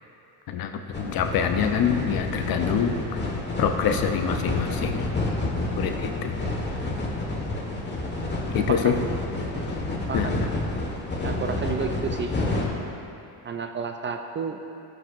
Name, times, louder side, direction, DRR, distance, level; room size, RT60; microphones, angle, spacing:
voice 1, 0.5-3.2 3.6-5.1 5.8-6.5 8.5-8.9 10.1-10.5, left 8 dB, 50° left, 6 dB, 0.7 m, -26 dB
sound 1, 0.9-12.7, left 2 dB, 25° left, 1.6 m, -29 dB
voice 2, 10.1-10.5 11.2-12.3 13.4-14.6, right 5 dB, 25° right, 5 dB, 0.4 m, -31 dB
14.0 x 5.9 x 2.6 m, 2.7 s
supercardioid pair, 75°, 46 cm